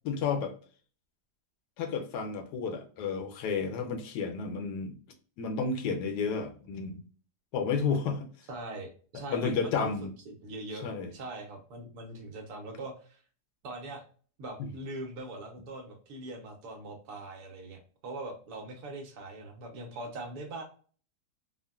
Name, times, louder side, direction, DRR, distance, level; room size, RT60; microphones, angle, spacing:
voice 1, 0.0-0.5 1.8-4.9 5.4-7.0 7.5-8.3 9.3-10.1 10.8-11.1 14.6-14.7, left 5 dB, 80° left, 1.1 m, -31 dB
voice 2, 8.5-13.2 13.6-14.0 14.4-20.6, right 2 dB, 70° right, 1.2 m, -42 dB
3.7 x 2.1 x 2.2 m
omnidirectional pair, 1.7 m